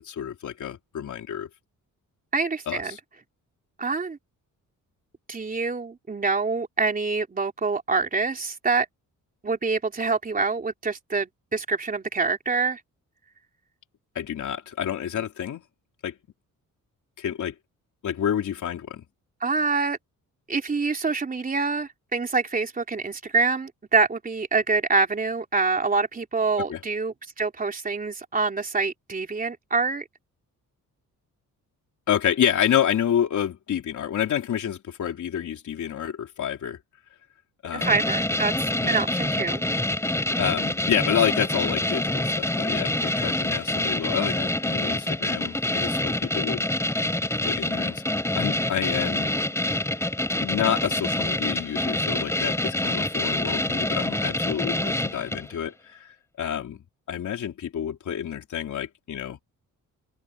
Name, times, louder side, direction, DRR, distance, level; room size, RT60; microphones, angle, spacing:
voice 1, 0.0-1.5 2.7-3.0 14.1-15.6 16.0-16.2 17.2-17.5 18.0-19.0 26.7-26.8 32.1-36.8 37.6-38.0 38.8-39.0 40.4-46.6 47.4-49.3 50.4-56.1 56.4-59.4, left 9 dB, 65° left, 3.5 m, -28 dB
voice 2, 2.3-3.0 3.8-4.2 5.3-8.9 9.4-12.8 15.1-15.2 19.4-20.0 20.5-30.0 37.7-38.5 38.9-39.6, right 4 dB, 25° right, 3.5 m, -26 dB
sound 1, 37.8-55.5, left 1 dB, 10° left, 4.3 m, -26 dB
open air
wide cardioid pair, 150°, 33 cm